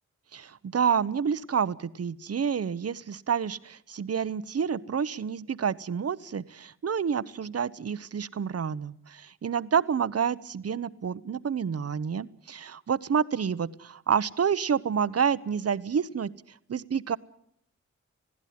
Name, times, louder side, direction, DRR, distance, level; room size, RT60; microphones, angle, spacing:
voice 1, 0.3-16.3 16.7-17.2, right 7 dB, 55° right, 16 dB, 0.9 m, -29 dB
20.5 x 15.5 x 9.5 m, 0.69 s
cardioid pair, 55°, 30 cm